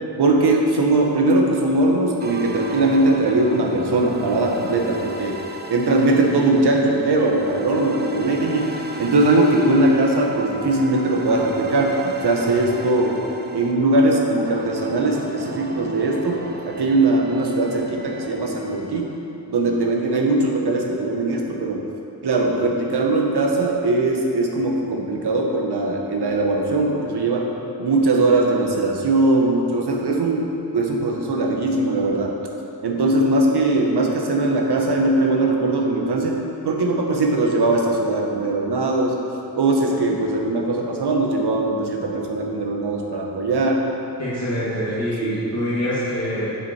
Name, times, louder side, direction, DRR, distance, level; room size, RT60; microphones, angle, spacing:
voice 1, 0.2-5.3 5.7-8.7 9.0-11.9 12.2-13.2 13.5-19.1 19.5-21.8 22.2-27.5 27.8-32.3 32.8-39.1 39.5-43.8 45.2-45.4, right 2 dB, 65° right, 0 dB, 1.3 m, -20 dB
sound 1, 2.2-18.9, right 2 dB, 25° right, 0.6 m, -36 dB
voice 2, 44.2-46.6, equal, 35° left, -11 dB, 2.1 m, -25 dB
9.9 x 7.7 x 4.3 m, 2.9 s
wide cardioid pair, 175°, 43 cm